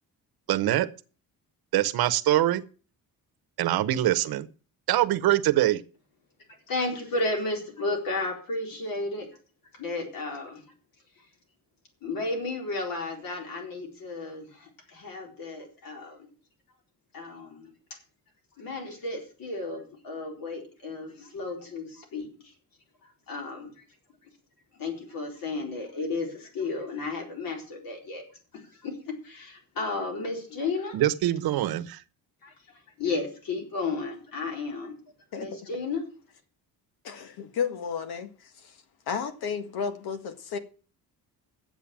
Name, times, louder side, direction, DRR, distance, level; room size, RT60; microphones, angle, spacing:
voice 1, 0.5-0.9 1.7-2.6 3.6-4.5 4.9-5.8 30.9-32.0, right 14 dB, 80° right, 1.1 m, -23 dB
voice 2, 6.7-9.3 9.7-10.6 12.0-16.3 17.1-17.7 18.6-22.5 23.0-23.8 24.8-28.2 28.5-28.9 29.2-31.0 32.4-32.5 33.0-34.9 35.3-36.0, left 3 dB, 65° left, 4.1 m, -33 dB
voice 3, 37.0-38.3 39.1-40.6, left 6 dB, 85° left, 1.8 m, -32 dB
10.5 x 8.1 x 7.3 m
cardioid pair, 140°, 36 cm